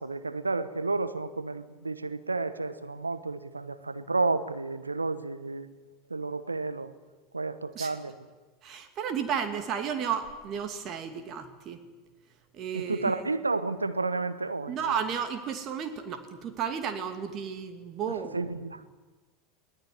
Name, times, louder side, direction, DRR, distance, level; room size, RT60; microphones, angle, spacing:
voice 1, 0.0-5.7 6.1-6.9 7.3-8.1 12.7-14.9 18.1-18.9, right 3 dB, 85° right, 1.1 m, -31 dB
voice 2, 8.6-11.8 12.5-13.2 14.7-18.5, right 7 dB, 40° right, 2.5 m, -33 dB
23.0 x 18.0 x 9.9 m
figure-of-eight pair, 80°, 0 cm